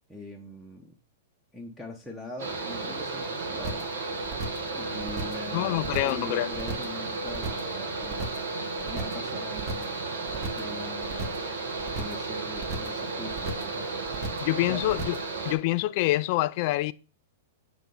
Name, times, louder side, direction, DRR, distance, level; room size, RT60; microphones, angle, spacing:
voice 1, 0.1-0.9 1.5-3.9 4.7-8.4 8.9-9.9 10.5-11.4 11.9-14.0 14.7-14.8, left 2 dB, ahead, 1.0 m, -42 dB
Mechanical fan, 2.4-15.6, right 3 dB, 65° right, 1.4 m, -33 dB
sound 1, 3.6-3.9 4.2-4.7 5.0-5.5 5.8-6.2 6.5-7.0 7.3-7.7 8.0-8.5 8.8-9.3 9.6-10.0 10.3-10.7 11.0-11.5 11.8-12.3 12.5-13.0 13.3-13.8 14.0-14.5 14.8-15.3, right 3 dB, 40° right, 1.7 m, -36 dB
voice 2, 5.5-6.5 14.4-15.2 15.4-16.9, left 18 dB, 50° left, 0.3 m, -26 dB
7.2 x 3.4 x 5.5 m
hypercardioid pair, 110°, 0 cm